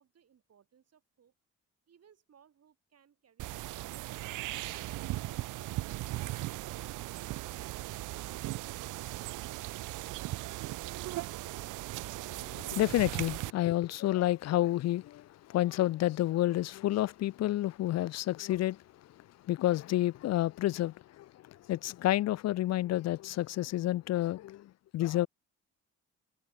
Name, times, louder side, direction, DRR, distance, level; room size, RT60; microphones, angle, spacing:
voice 1, 0.0-1.3 1.9-4.9, right 8 dB, 55° right, 7.8 m, -66 dB
sound 1, 3.4-13.5, right 18 dB, 90° right, 1.1 m, -38 dB
voice 2, 12.3-25.3, left 14 dB, 60° left, 0.4 m, -30 dB
cardioid pair, 90°, 30 cm